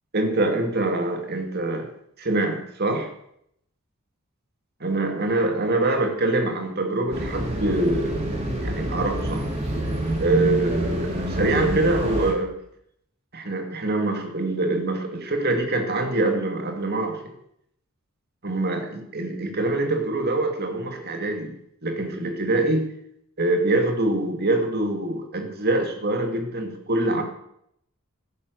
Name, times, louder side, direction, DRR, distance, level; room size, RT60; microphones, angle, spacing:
voice 1, 0.1-1.9 2.2-3.1 4.8-8.3 8.6-9.5 10.2-12.5 13.3-17.3 18.4-21.5 21.8-22.9 23.4-27.2, right 2 dB, 45° right, 4 dB, 2.5 m, -24 dB
sound 1, 7.1-12.3, right 1 dB, 30° right, 3.0 m, -27 dB
16.5 x 9.5 x 6.6 m, 0.73 s
head